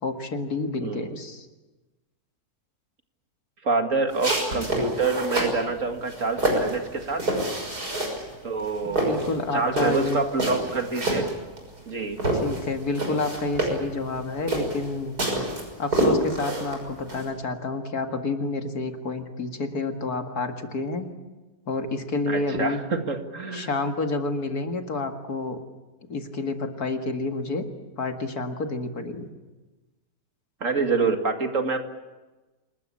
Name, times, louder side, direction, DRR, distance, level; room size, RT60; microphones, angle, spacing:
voice 1, 0.0-1.5 8.8-10.2 12.4-15.2 15.8-21.1 21.7-22.8 23.5-25.6 26.1-27.6 28.0-29.3, left 3 dB, 75° left, 5 dB, 2.5 m, -29 dB
voice 2, 0.8-1.2 3.6-7.4 8.4-11.3 11.9-12.2 22.3-23.7 30.6-31.8, right 4 dB, 55° right, 5 dB, 2.4 m, -27 dB
sound 1, 4.1-5.6 6.1-8.3 8.6-11.9 12.2-17.3, right 1 dB, 80° right, 6.7 m, -27 dB
27.0 x 20.5 x 8.6 m, 1.2 s
omnidirectional pair, 1.6 m